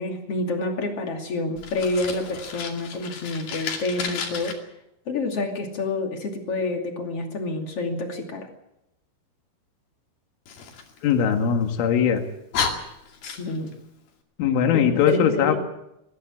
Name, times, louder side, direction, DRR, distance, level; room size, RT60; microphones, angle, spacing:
voice 1, 0.0-4.6 5.1-8.5 13.2-13.7 14.7-15.6, left 2 dB, 35° left, 3 dB, 2.8 m, -28 dB
Fire, 1.6-4.5 10.5-11.7 12.2-12.3 12.5-13.7, left 6 dB, 55° left, 4.0 m, -32 dB
voice 2, 11.0-12.2 14.4-15.6, left 8 dB, 75° left, 5 dB, 4.3 m, -20 dB
21.5 x 15.0 x 8.7 m, 0.84 s
omnidirectional pair, 5.7 m